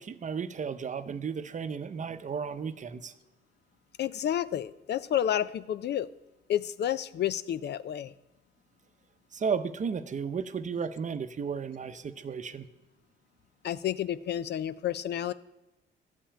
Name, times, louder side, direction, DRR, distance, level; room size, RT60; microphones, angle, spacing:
voice 1, 0.0-3.1 9.3-12.7, right 6 dB, 40° right, 11 dB, 0.8 m, -34 dB
voice 2, 4.0-6.1 6.5-8.1 13.6-15.3, left 10 dB, 60° left, 16 dB, 0.5 m, -30 dB
12.5 x 5.6 x 8.7 m, 1.0 s
cardioid pair, 90°, 20 cm